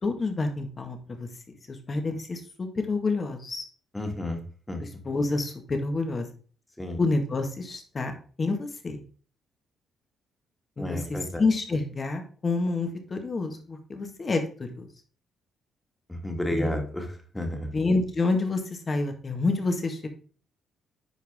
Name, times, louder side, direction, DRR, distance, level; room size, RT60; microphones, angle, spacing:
voice 1, 0.0-1.3 1.7-3.6 4.8-6.3 7.0-9.0 10.8-14.9 16.5-16.8 17.7-20.1, left 3 dB, 35° left, 5 dB, 1.7 m, -28 dB
voice 2, 3.9-4.4 4.7-4.8 6.8-7.0 10.8-11.4 16.1-17.7, left 1 dB, 10° left, 3 dB, 2.1 m, -31 dB
10.0 x 4.8 x 3.6 m, 0.41 s
cardioid pair, 90°, 0 cm